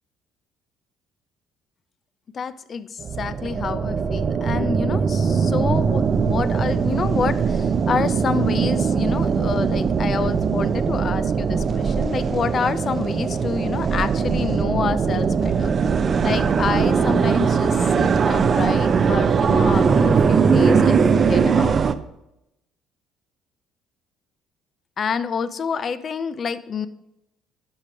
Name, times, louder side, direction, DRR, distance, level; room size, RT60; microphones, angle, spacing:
voice 1, 2.3-15.7 16.2-21.8 25.0-26.9, left 6 dB, 45° left, 14 dB, 0.5 m, -28 dB
sound 1, 3.0-21.9, right 6 dB, 45° right, 0.5 m, -20 dB
10.5 x 3.7 x 5.8 m, 0.86 s
supercardioid pair, 70°, 0 cm